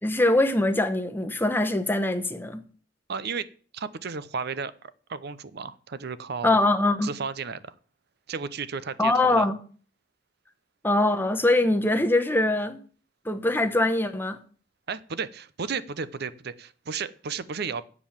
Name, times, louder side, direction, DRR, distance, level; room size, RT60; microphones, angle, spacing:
voice 1, 0.0-2.6 6.4-7.1 9.0-9.6 10.8-12.8 13.2-14.4, left 2 dB, 10° left, 1.0 m, -23 dB
voice 2, 3.1-3.5 3.7-6.6 7.0-7.7 8.3-9.5 14.9-17.8, right 5 dB, 55° right, 0.7 m, -33 dB
8.4 x 7.3 x 7.2 m
head